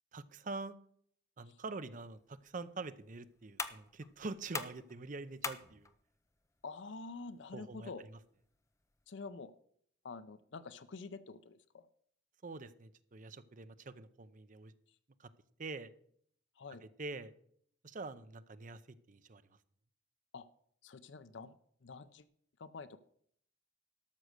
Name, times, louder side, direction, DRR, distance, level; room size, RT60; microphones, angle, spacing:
voice 1, 0.1-0.8 1.4-5.9 7.5-8.2 12.4-14.7 15.2-15.3 15.6-15.9 16.8-17.3 17.8-18.8 19.1-19.4, right 3 dB, 45° right, 12 dB, 0.6 m, -45 dB
sound 1, 2.1-9.1, left 4 dB, 15° left, 0.6 m, -47 dB
voice 2, 6.6-8.0 9.1-9.5 10.0-11.9 16.6-16.8 20.3-20.5 20.8-21.5 21.8-22.2 22.6-23.0, left 4 dB, 65° left, 14 dB, 0.6 m, -47 dB
12.5 x 6.3 x 6.5 m, 0.65 s
head